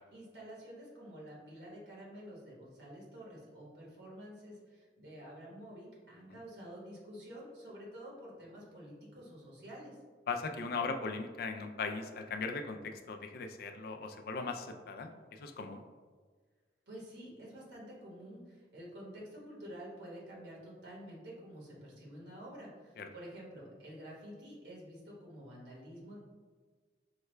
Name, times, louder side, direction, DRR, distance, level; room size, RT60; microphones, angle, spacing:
voice 1, 0.0-10.0 16.9-26.2, equal, 75° right, -5 dB, 1.2 m, -49 dB
voice 2, 10.3-15.8 23.0-23.1, left 4 dB, 55° left, 5 dB, 0.3 m, -39 dB
4.6 x 2.2 x 3.2 m, 1.5 s
head